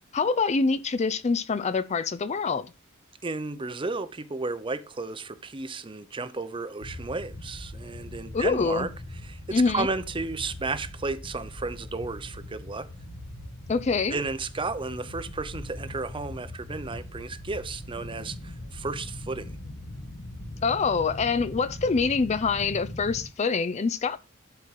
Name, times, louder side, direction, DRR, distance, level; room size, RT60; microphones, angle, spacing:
voice 1, 0.1-2.7 8.3-8.9 9.5-9.9 13.7-14.2 20.6-24.2, left 4 dB, 30° left, 0.4 m, -25 dB
voice 2, 3.2-8.9 9.2-12.9 14.1-19.6, right 3 dB, 25° right, 0.7 m, -33 dB
sound 1, 6.8-23.3, left 1 dB, 55° left, 1.3 m, -41 dB
11.5 x 4.5 x 4.5 m
head